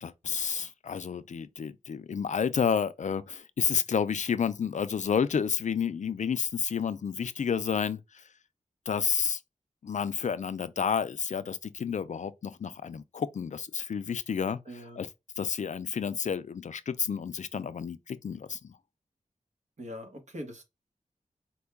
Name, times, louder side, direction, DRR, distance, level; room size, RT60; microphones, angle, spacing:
voice 1, 0.0-8.3 8.9-9.4 9.8-14.6 15.0-15.1 15.4-18.7, left 7 dB, 65° left, 0.4 m, -30 dB
voice 2, 14.7-15.0 19.8-20.6, equal, 60° right, 1.1 m, -42 dB
4.4 x 2.2 x 3.4 m
wide cardioid pair, 95°, 14 cm